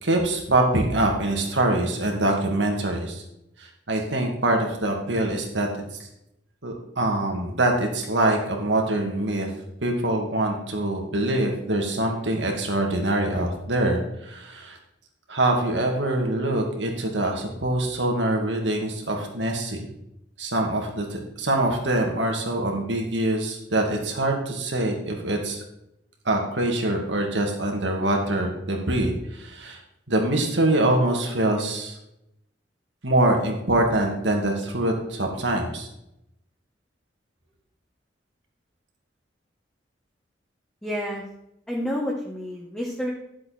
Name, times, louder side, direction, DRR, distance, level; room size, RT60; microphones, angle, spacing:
voice 1, 0.0-3.2 3.6-5.7 6.0-6.1 6.6-9.5 9.8-14.8 15.3-19.8 20.4-25.6 26.3-29.8 30.1-32.0 33.0-35.9, right 1 dB, 85° right, 1 dB, 2.2 m, -24 dB
voice 2, 40.8-41.2 41.7-43.1, equal, 5° left, -3 dB, 1.3 m, -29 dB
11.5 x 7.4 x 4.3 m, 0.83 s
head